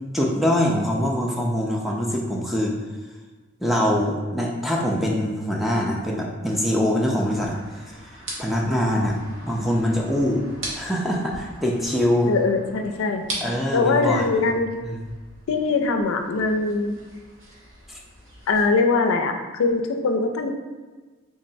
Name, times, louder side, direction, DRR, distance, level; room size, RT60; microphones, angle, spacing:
voice 1, 0.1-2.7 3.6-7.6 8.4-9.2 9.5-10.4 10.7-12.3 13.4-14.4 14.8-15.0 17.9-18.0, equal, ahead, -2 dB, 0.3 m, -23 dB
sound 1, 7.3-18.7, right 1 dB, 60° right, 0.8 m, -40 dB
voice 2, 12.3-13.2 13.7-14.7 15.5-17.0 18.5-20.5, left 3 dB, 75° left, 5 dB, 0.4 m, -22 dB
3.7 x 3.1 x 2.6 m, 1.3 s
head